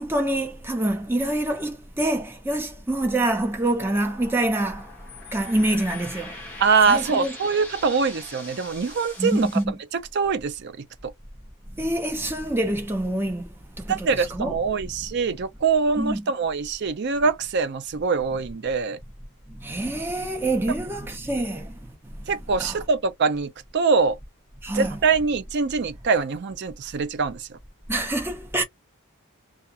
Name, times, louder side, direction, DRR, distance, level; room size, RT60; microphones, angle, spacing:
voice 1, 0.0-4.9 5.3-6.4 6.9-7.4 9.2-9.7 11.7-14.6 14.8-14.9 16.0-16.3 19.5-22.3 22.6-22.8 24.6-25.0 27.9-28.6, right 1 dB, 10° right, 0.7 m, -26 dB
sound 1, 3.8-9.6, left 2 dB, 5° left, 1.1 m, -42 dB
voice 2, 6.6-9.5 9.9-10.8 11.0-11.1 13.9-19.0 22.3-24.2 24.7-27.6, right 5 dB, 50° right, 0.4 m, -23 dB
2.3 x 2.3 x 2.7 m
head